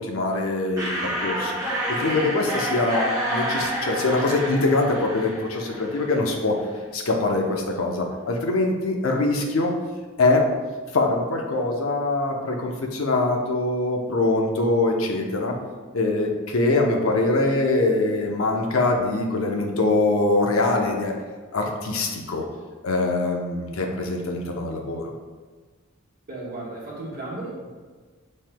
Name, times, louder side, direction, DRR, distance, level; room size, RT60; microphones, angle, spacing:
voice 1, 0.0-1.6 1.9-6.6 6.9-9.7 10.2-10.5 10.9-15.6 15.9-21.1 21.5-22.5 22.8-25.1, left 2 dB, 80° left, 2 dB, 0.7 m, -23 dB
sound 1, 0.8-6.3, equal, 15° right, 1.0 m, -28 dB
voice 2, 26.3-27.7, right 2 dB, 45° right, -5 dB, 1.3 m, -34 dB
7.4 x 3.2 x 2.2 m, 1.4 s
head